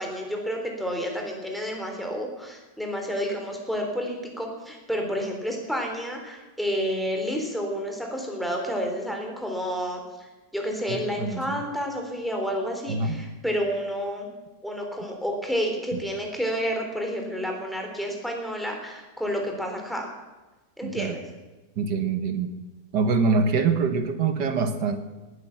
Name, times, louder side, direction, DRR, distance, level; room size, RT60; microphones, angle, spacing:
voice 1, 0.0-14.3 14.6-20.1 20.8-21.3, equal, ahead, 2 dB, 3.7 m, -30 dB
voice 2, 10.9-11.6 12.9-13.2 20.8-21.1 21.8-22.5 22.9-25.0, right 4 dB, 75° right, 8 dB, 1.9 m, -25 dB
19.5 x 9.9 x 7.3 m, 1.2 s
omnidirectional pair, 1.9 m